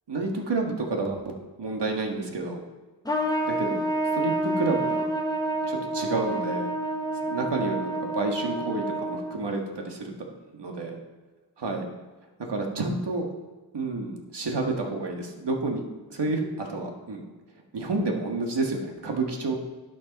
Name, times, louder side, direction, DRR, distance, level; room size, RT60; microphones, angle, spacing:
voice 1, 0.1-1.2 1.6-2.6 3.5-3.8 4.1-5.0 5.7-6.7 7.3-10.1 10.5-11.0 11.6-11.9 12.4-13.2 13.7-15.8 16.1-17.3 17.7-19.6, right 3 dB, 70° right, 2 dB, 1.7 m, -29 dB
Trumpet, 3.0-9.6, right 1 dB, 10° left, 1.0 m, -28 dB
11.5 x 8.4 x 4.1 m, 1.3 s
wide cardioid pair, 100°, 43 cm